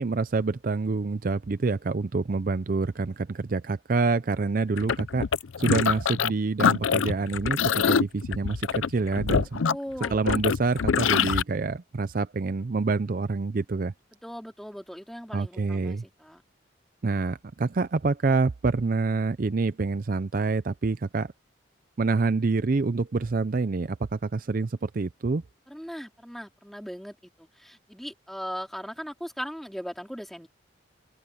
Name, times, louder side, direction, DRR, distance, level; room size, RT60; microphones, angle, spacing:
voice 1, 0.0-5.3 5.6-9.6 10.1-13.9 15.3-16.0 17.0-21.3 22.0-25.4, right 3 dB, 45° right, 0.5 m, -27 dB
sound 1, 4.8-6.3 6.6-11.4, left 6 dB, 90° left, 0.5 m, -25 dB
voice 2, 9.6-10.2 14.2-16.4 25.7-30.5, equal, ahead, 4.2 m, -39 dB
open air
head